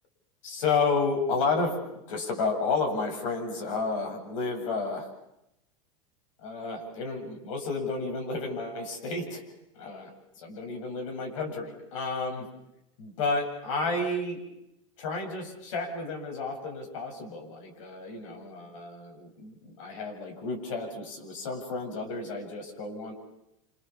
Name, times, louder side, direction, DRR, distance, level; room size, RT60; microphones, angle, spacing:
voice 1, 0.4-5.1 6.4-9.4 9.8-10.1 10.4-12.5 13.0-14.4 15.0-23.1, left 3 dB, 75° left, 2 dB, 7.8 m, -31 dB
28.0 x 27.5 x 7.3 m, 0.85 s
hypercardioid pair, 100°, 17 cm